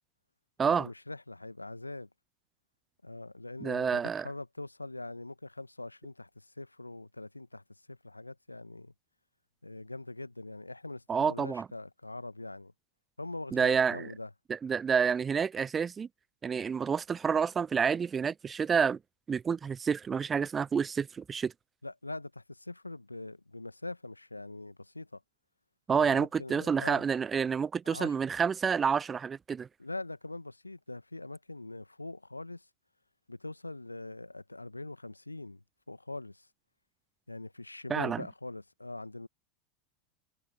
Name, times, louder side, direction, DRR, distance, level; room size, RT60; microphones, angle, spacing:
voice 1, 0.6-2.1 3.0-8.9 9.6-12.7 13.2-14.3 21.8-25.2 25.9-27.0 27.8-28.2 29.8-32.7 33.3-36.5 37.3-39.3, left 2 dB, 90° left, 1.5 m, -42 dB
voice 2, 3.6-4.3 11.1-11.7 13.5-14.1 14.5-16.1 16.4-19.0 19.3-21.5 25.9-29.7 37.9-38.2, right 6 dB, 20° right, 0.3 m, -29 dB
figure-of-eight pair, 85°, 0 cm